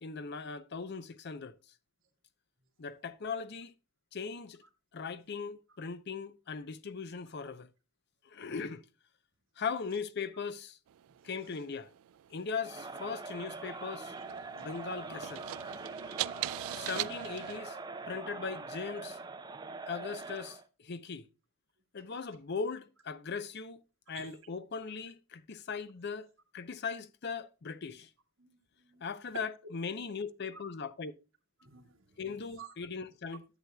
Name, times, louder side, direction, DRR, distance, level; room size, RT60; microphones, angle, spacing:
voice 1, 0.0-1.6 2.8-3.7 4.1-4.6 4.9-7.7 8.3-8.8 9.6-10.8 11.2-11.9 12.3-14.1 14.6-15.4 16.7-17.8 18.1-19.2 19.9-21.3 21.9-23.8 24.1-26.3 26.5-28.1 29.0-31.1 32.2-33.4, left 5 dB, 50° left, 0.6 m, -39 dB
sound 1, 10.9-17.6, right 14 dB, 85° right, 0.3 m, -42 dB
Crowd, 12.6-20.6, right 3 dB, 20° right, 0.6 m, -43 dB
voice 2, 28.4-29.4 30.5-30.6 31.6-32.0 32.6-32.7, right 4 dB, 65° right, 1.6 m, -50 dB
11.5 x 7.6 x 2.2 m
head